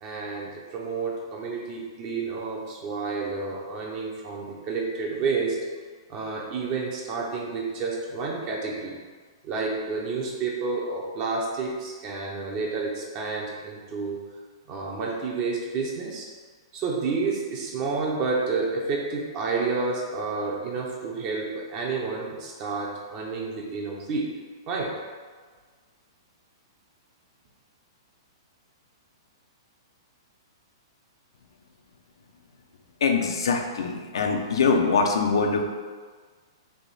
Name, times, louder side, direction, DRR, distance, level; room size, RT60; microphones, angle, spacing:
voice 1, 0.0-5.6 6.1-9.0 9.4-14.2 14.7-16.3 16.7-24.3 24.7-25.0, right 4 dB, 35° right, -2 dB, 0.6 m, -30 dB
voice 2, 33.0-35.6, left 4 dB, 80° left, 3 dB, 0.5 m, -23 dB
3.4 x 2.7 x 4.0 m, 1.5 s
hypercardioid pair, 150°, 3 cm